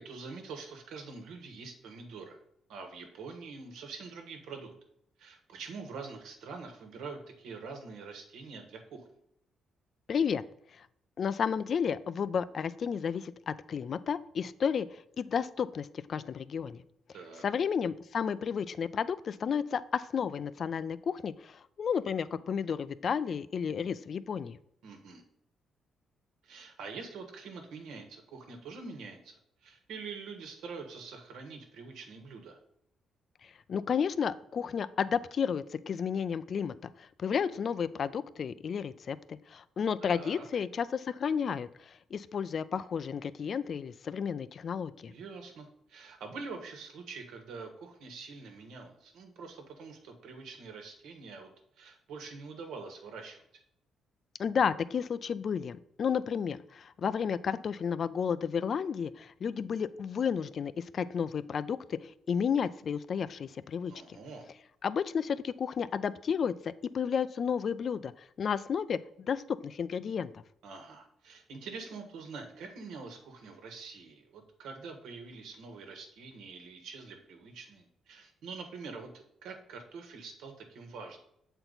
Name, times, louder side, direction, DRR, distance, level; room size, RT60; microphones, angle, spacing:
voice 1, 0.0-2.4 2.7-4.7 5.2-9.0 17.1-17.4 24.8-25.2 26.4-32.6 40.0-40.5 45.1-53.4 63.9-64.5 70.6-81.2, right 4 dB, 85° right, 4 dB, 1.4 m, -45 dB
voice 2, 10.1-10.4 10.8-10.9 11.2-16.8 17.4-24.6 33.7-45.1 54.4-64.2 64.8-70.3, left 7 dB, 45° left, 16 dB, 0.3 m, -32 dB
7.8 x 4.4 x 4.0 m, 0.75 s
cardioid pair, 125°, 0 cm